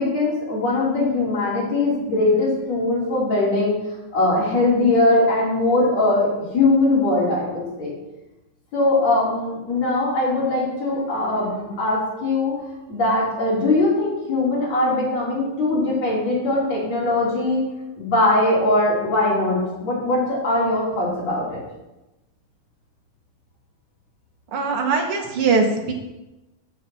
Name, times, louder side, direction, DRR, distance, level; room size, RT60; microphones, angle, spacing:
voice 1, 0.0-3.7 4.1-6.3 6.5-7.9 8.7-12.5 12.9-17.6 18.0-21.6, left 2 dB, 50° left, -5 dB, 4.2 m, -21 dB
voice 2, 24.5-25.9, right 4 dB, 55° right, 2 dB, 1.7 m, -21 dB
7.8 x 7.6 x 6.9 m, 1.0 s
omnidirectional pair, 3.8 m